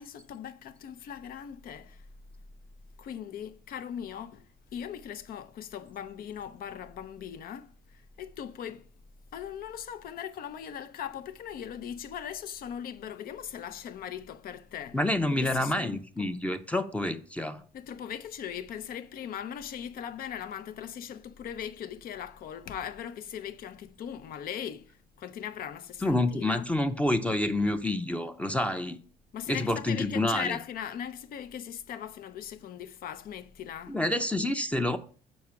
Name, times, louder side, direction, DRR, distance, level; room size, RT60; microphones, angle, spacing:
voice 1, 0.0-2.0 3.0-4.4 4.7-7.7 8.2-8.9 9.3-15.0 15.4-16.3 17.7-24.9 25.2-26.7 29.3-34.0, left 9 dB, 60° left, 0.7 m, -39 dB
voice 2, 14.9-17.6 26.0-29.0 29.5-30.6 33.9-35.0, left 1 dB, 5° left, 0.6 m, -28 dB
6.3 x 4.7 x 5.9 m
cardioid pair, 110°, 17 cm